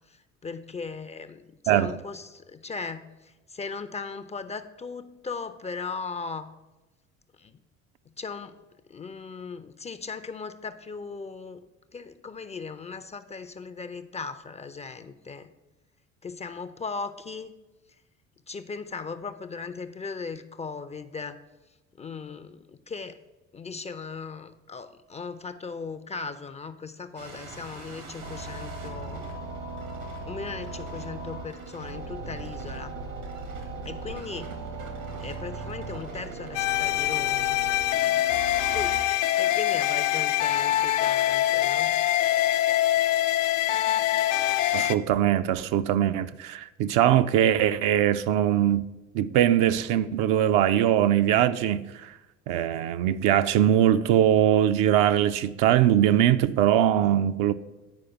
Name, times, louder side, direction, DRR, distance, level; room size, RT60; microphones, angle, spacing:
voice 1, 0.1-6.5 7.4-7.6 8.2-8.5 8.9-11.6 11.9-15.5 16.2-17.5 18.5-21.4 22.0-23.2 23.5-29.3 30.2-33.0 33.8-34.5 35.2-38.2 38.7-41.9, left 4 dB, 15° left, 0.4 m, -38 dB
sound 1, 27.2-39.0, right 3 dB, 80° right, 1.7 m, -38 dB
sound 2, 36.5-44.9, left 14 dB, 75° left, 0.5 m, -24 dB
voice 2, 44.7-48.9 49.1-52.1 52.5-57.5, right 11 dB, 55° right, 0.5 m, -22 dB
9.4 x 4.8 x 5.8 m
figure-of-eight pair, 55°, 39 cm